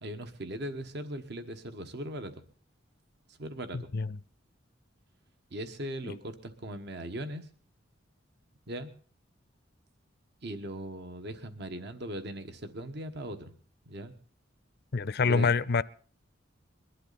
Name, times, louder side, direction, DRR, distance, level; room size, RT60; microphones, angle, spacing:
voice 1, 0.0-2.3 3.3-3.9 5.5-7.5 8.7-8.9 10.4-13.5 13.9-14.1 15.2-15.5, right 1 dB, 60° right, 9 dB, 1.4 m, -39 dB
voice 2, 3.7-4.2 6.0-6.1 14.9-15.8, left 4 dB, 55° left, 17 dB, 0.6 m, -27 dB
22.5 x 11.5 x 4.1 m, 0.43 s
head